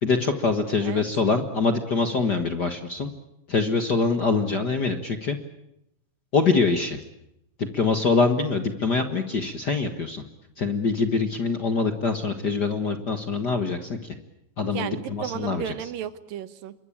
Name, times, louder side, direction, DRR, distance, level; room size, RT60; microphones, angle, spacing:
voice 1, 0.0-3.1 3.5-5.4 6.3-7.0 7.7-10.2 10.6-14.0 14.6-15.7, left 4 dB, 45° left, 7 dB, 1.5 m, -24 dB
voice 2, 14.7-16.7, right 10 dB, 85° right, 13 dB, 3.0 m, -34 dB
27.5 x 23.5 x 8.8 m, 0.80 s
omnidirectional pair, 3.9 m